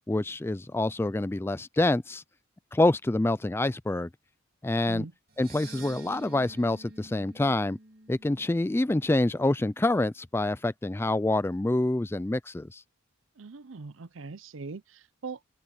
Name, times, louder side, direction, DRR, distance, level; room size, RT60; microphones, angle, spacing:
voice 1, 0.1-2.2 2.7-4.1 4.6-5.1 5.4-7.8 8.1-12.8, left 2 dB, 10° left, 0.3 m, -26 dB
sound 1, 5.3-9.6, right 3 dB, 45° right, 3.3 m, -49 dB
voice 2, 13.4-15.4, right 4 dB, 60° right, 0.6 m, -41 dB
open air
head